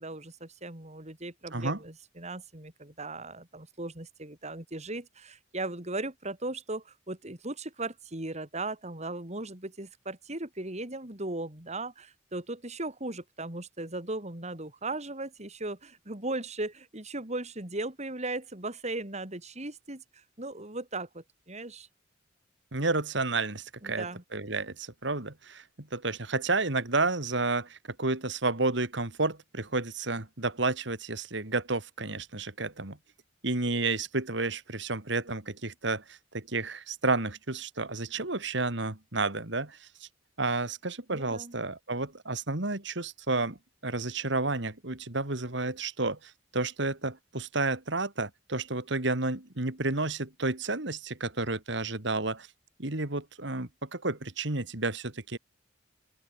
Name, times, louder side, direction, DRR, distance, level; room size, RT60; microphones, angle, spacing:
voice 1, 0.0-21.9 23.8-24.2 41.1-41.6, right 2 dB, 35° right, 3.7 m, -37 dB
voice 2, 22.7-24.1 24.3-33.0 33.4-39.9 40.4-43.6 43.8-52.5 52.8-55.4, right 3 dB, 65° right, 2.6 m, -31 dB
open air
head